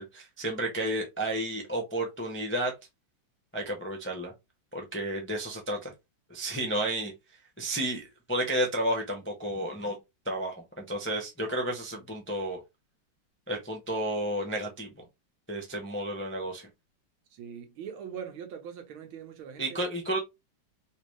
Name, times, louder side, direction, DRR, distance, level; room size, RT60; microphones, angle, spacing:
voice 1, 0.0-2.7 3.5-4.3 4.7-5.9 6.3-7.1 7.6-10.0 10.2-12.6 13.5-14.9 15.5-16.7 19.6-20.2, right 1 dB, 15° left, 0.4 m, -32 dB
voice 2, 17.3-19.8, right 8 dB, 90° right, 1.8 m, -42 dB
3.9 x 2.8 x 3.1 m
omnidirectional pair, 2.2 m